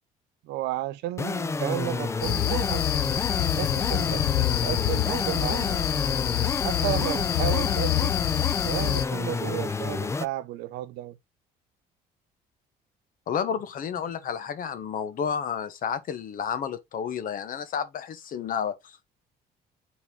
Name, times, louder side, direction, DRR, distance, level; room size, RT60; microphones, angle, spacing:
voice 1, 0.4-2.8 3.3-5.8 6.6-8.2 8.6-11.2, right 15 dB, 90° right, 0.7 m, -33 dB
sound 1, 1.2-10.3, left 4 dB, 15° left, 0.4 m, -29 dB
sound 2, 2.2-9.1, left 16 dB, 75° left, 0.6 m, -27 dB
voice 2, 13.3-19.1, left 7 dB, 55° left, 1.0 m, -31 dB
6.0 x 4.2 x 3.7 m
cardioid pair, 110°, 17 cm